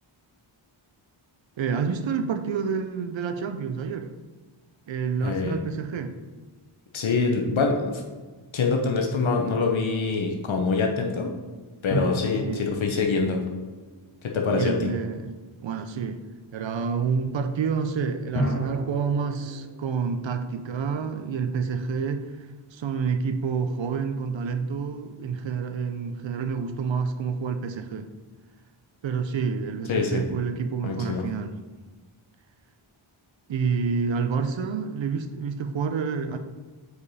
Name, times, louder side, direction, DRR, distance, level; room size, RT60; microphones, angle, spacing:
voice 1, 1.6-4.1 4.9-6.1 12.4-12.7 14.5-15.3 15.6-16.2 16.5-22.3 22.7-28.1 29.0-31.6 33.5-36.4, right 5 dB, 65° right, 7 dB, 0.7 m, -28 dB
voice 2, 5.2-5.6 6.9-8.0 8.5-11.3 11.8-13.4 14.2-14.9 29.9-30.2 30.8-31.2, left 4 dB, 70° left, 2 dB, 0.9 m, -25 dB
sound 1, 11.9-14.7 18.4-21.7, right 1 dB, 30° left, 1.5 m, -34 dB
5.0 x 4.8 x 4.1 m, 1.3 s
wide cardioid pair, 70°, 49 cm